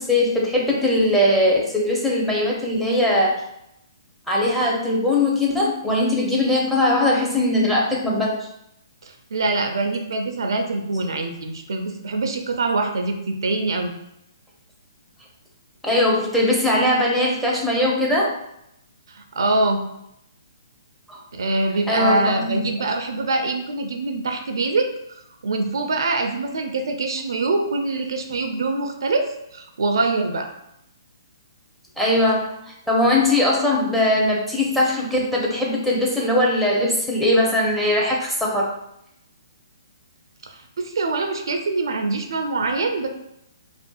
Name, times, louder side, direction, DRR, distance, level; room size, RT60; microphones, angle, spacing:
voice 1, 0.0-3.3 4.3-8.3 15.8-18.3 21.1-21.2 21.9-22.6 32.0-38.7, left 1 dB, ahead, -4 dB, 0.5 m, -20 dB
voice 2, 9.0-13.9 19.1-19.8 21.3-24.9 25.4-30.5 40.4-43.1, right 3 dB, 65° right, 4 dB, 0.4 m, -24 dB
2.5 x 2.4 x 2.2 m, 0.80 s
figure-of-eight pair, 130°, 2 cm